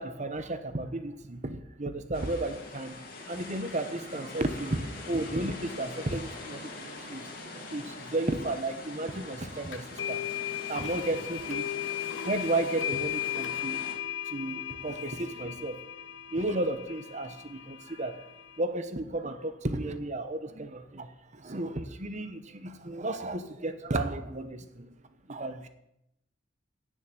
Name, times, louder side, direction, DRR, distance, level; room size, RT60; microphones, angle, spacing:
voice 1, 0.0-3.0 3.3-10.3 10.7-11.8 12.2-13.8 14.3-15.8 16.3-18.3 18.6-24.9 25.3-25.7, right 2 dB, 40° right, 1.0 m, -33 dB
sound 1, 2.1-13.9, left 2 dB, 50° left, 2.7 m, -43 dB
sound 2, 9.7-18.6, left 11 dB, 90° left, 1.1 m, -36 dB
9.5 x 7.3 x 9.0 m
head